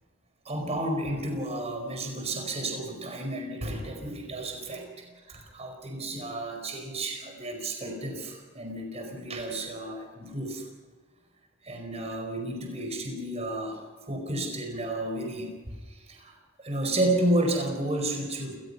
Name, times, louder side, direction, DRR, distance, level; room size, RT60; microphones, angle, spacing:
voice 1, 0.4-10.7 11.6-18.6, right 1 dB, 35° right, 3 dB, 4.8 m, -32 dB
28.5 x 20.0 x 5.6 m, 1.4 s
head